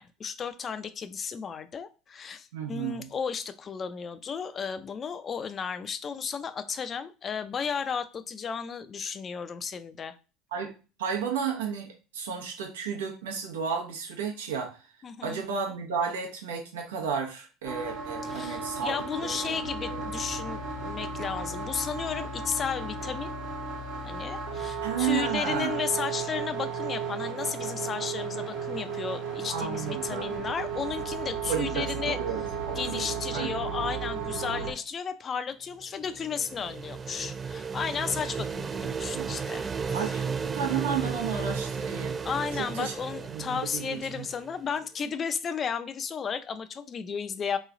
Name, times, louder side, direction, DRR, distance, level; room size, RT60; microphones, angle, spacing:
voice 1, 0.0-10.2 15.0-15.4 18.2-23.3 24.0-32.2 32.8-40.2 42.2-47.6, left 6 dB, 35° left, 11 dB, 0.4 m, -34 dB
voice 2, 2.5-3.1 10.5-10.7 11.0-14.8 15.2-19.5 19.9-20.1 24.8-25.8 29.5-30.4 31.5-33.0 33.3-33.6 38.8-39.3 39.9-42.2 42.5-42.9 43.3-44.3, right 6 dB, 90° right, 0 dB, 1.0 m, -33 dB
sound 1, 17.6-34.7, right 6 dB, 65° right, 1.2 m, -34 dB
sound 2, 19.6-25.8, left 9 dB, 80° left, 1.1 m, -43 dB
sound 3, 35.8-44.6, right 5 dB, 30° right, 0.3 m, -34 dB
3.1 x 2.3 x 3.7 m, 0.34 s
hypercardioid pair, 85°, 0 cm